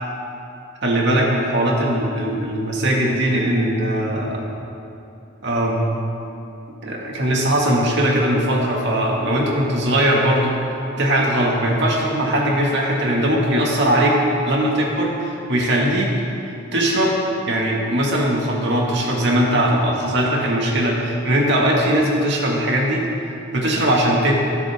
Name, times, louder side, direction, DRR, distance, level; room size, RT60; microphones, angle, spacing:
voice 1, 0.8-4.4 5.4-6.0 6.8-10.6 11.0-14.2 14.4-16.1 16.7-17.2 17.5-23.0 23.5-24.3, right 1 dB, 60° right, -2 dB, 2.2 m, -20 dB
20.0 x 11.0 x 3.7 m, 2.9 s
head